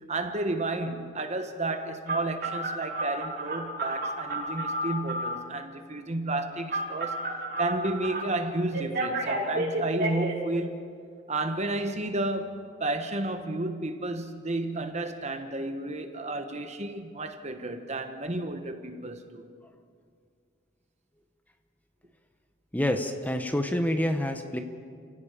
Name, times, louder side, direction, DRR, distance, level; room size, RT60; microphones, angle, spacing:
voice 1, 0.1-7.3 7.6-10.9 11.3-19.5, right 2 dB, 40° right, 1.4 m, -32 dB
Telephone, 2.1-5.4 6.7-8.2 8.7-10.3, right 1 dB, 55° right, 5.8 m, -31 dB
voice 2, 22.7-24.6, left 1 dB, 10° left, 1.0 m, -27 dB
30.0 x 17.5 x 5.2 m
head